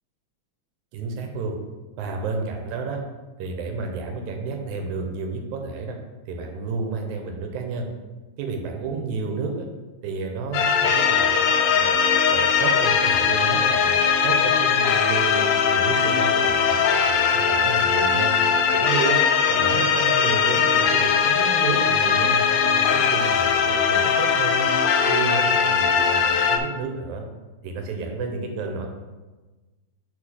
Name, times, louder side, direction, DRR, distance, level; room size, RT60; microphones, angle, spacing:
voice 1, 0.9-1.6 2.0-3.0 3.4-6.0 6.3-7.9 8.4-9.7 10.0-16.8 17.1-18.3 18.7-19.2 19.5-24.7 25.1-27.2 27.6-28.9, right 4 dB, 90° right, 3 dB, 2.2 m, -31 dB
sound 1, 10.5-26.6, left 6 dB, 80° left, 1.7 m, -20 dB
4.9 x 4.1 x 5.7 m, 1.2 s
omnidirectional pair, 3.3 m